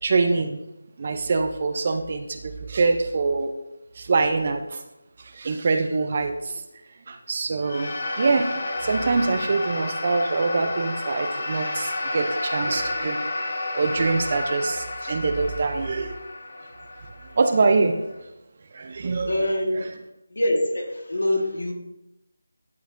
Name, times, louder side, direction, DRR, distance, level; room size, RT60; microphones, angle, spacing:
voice 1, 0.0-0.6 1.0-3.5 4.0-4.8 5.2-6.6 7.1-13.2 13.7-16.2 17.4-18.1 18.7-19.3, right 3 dB, 40° right, 7 dB, 0.6 m, -24 dB
sound 1, 7.6-18.1, left 2 dB, 50° left, 0.9 m, -31 dB
voice 2, 19.2-19.8 20.3-21.7, left 1 dB, 70° left, 2 dB, 1.5 m, -24 dB
11.5 x 4.0 x 2.6 m, 0.92 s
figure-of-eight pair, 165°, 0 cm